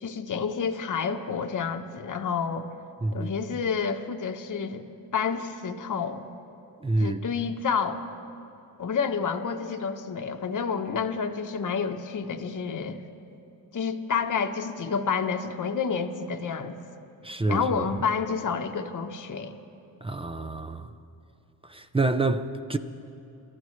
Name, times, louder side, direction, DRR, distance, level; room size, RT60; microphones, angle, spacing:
voice 1, 0.0-2.7 3.1-4.8 5.1-6.2 7.0-8.0 8.8-13.0 13.7-16.8 17.5-19.6, left 6 dB, 45° left, 1.1 m, -29 dB
voice 2, 3.0-3.3 6.8-7.2 17.2-17.8 20.0-20.9 21.6-22.8, right 2 dB, 15° right, 0.8 m, -27 dB
28.5 x 13.5 x 3.3 m
cardioid pair, 65°, 43 cm